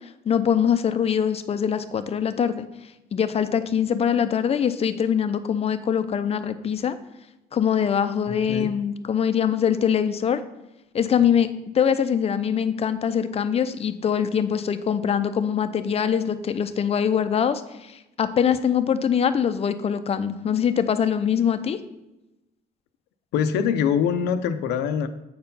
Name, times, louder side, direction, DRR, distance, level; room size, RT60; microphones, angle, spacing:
voice 1, 0.3-2.6 3.1-7.0 7.5-10.4 10.9-11.5 11.7-21.8, left 8 dB, 35° left, 11 dB, 0.6 m, -23 dB
voice 2, 23.3-25.1, left 7 dB, 90° left, 9 dB, 0.6 m, -23 dB
7.7 x 4.5 x 5.4 m, 0.95 s
cardioid pair, 110°, 17 cm